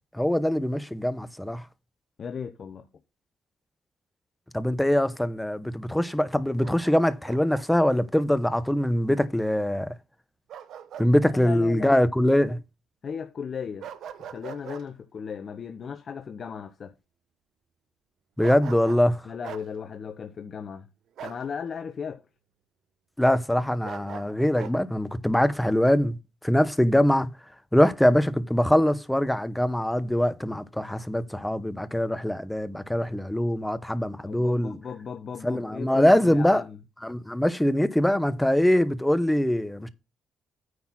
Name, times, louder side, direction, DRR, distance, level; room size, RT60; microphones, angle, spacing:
voice 1, 0.1-1.6 4.5-9.9 11.0-12.6 18.4-19.2 23.2-26.2 26.4-27.3 27.7-34.8 35.4-36.6 37.0-39.9, left 1 dB, 5° left, 0.9 m, -23 dB
voice 2, 2.2-2.9 11.2-12.0 13.0-13.9 14.2-16.9 19.2-20.9 21.2-22.2 34.2-36.8, left 6 dB, 50° left, 0.8 m, -36 dB
Bark, 6.6-7.7 10.5-11.1 11.5-11.6 13.8-14.9 18.4-19.1 19.4-19.7 21.2-21.4 23.8-24.8, right 9 dB, 75° right, 1.0 m, -41 dB
9.5 x 4.2 x 5.9 m
cardioid pair, 90°, 0 cm